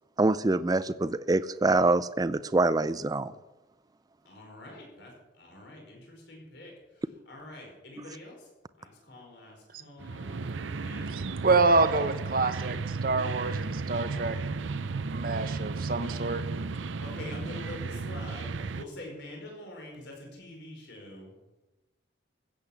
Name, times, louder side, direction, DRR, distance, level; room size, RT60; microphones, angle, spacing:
voice 1, 0.2-3.3, right 2 dB, 20° right, 15 dB, 0.4 m, -25 dB
voice 2, 4.2-8.5 8.8-11.2 17.0-21.3, left 1 dB, 65° left, 0 dB, 4.8 m, -45 dB
Binaural London Fields, 10.0-18.8, right 4 dB, 80° right, 0.6 m, -34 dB
voice 3, 11.4-14.4 15.1-16.4, right 3 dB, 50° right, 10 dB, 0.9 m, -26 dB
15.5 x 8.1 x 7.1 m, 1.1 s
head